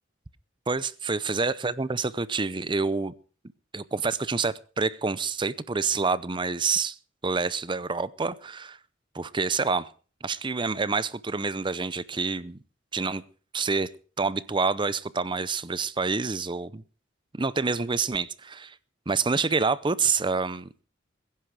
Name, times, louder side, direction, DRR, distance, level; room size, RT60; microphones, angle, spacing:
voice 1, 0.7-3.1 3.7-7.0 7.2-8.8 9.1-9.9 10.2-12.6 12.9-13.2 13.5-13.9 14.2-16.8 17.3-18.8 19.1-20.8, right 4 dB, 25° right, 0.6 m, -27 dB
22.0 x 10.5 x 4.8 m
head